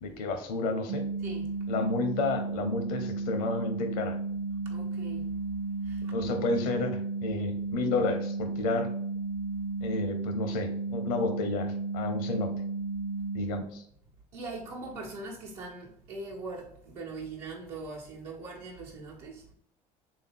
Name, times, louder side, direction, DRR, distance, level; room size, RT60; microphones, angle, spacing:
voice 1, 0.0-1.0 1.7-4.2 6.1-8.9 9.8-12.5 13.3-13.8, left 3 dB, 70° left, 0.7 m, -31 dB
sound 1, 0.9-13.6, right 3 dB, 30° right, 0.5 m, -33 dB
voice 2, 4.7-5.3 5.8-6.0 14.3-19.4, right 3 dB, 75° right, 1.0 m, -41 dB
3.5 x 2.7 x 3.5 m
hypercardioid pair, 60°, 20 cm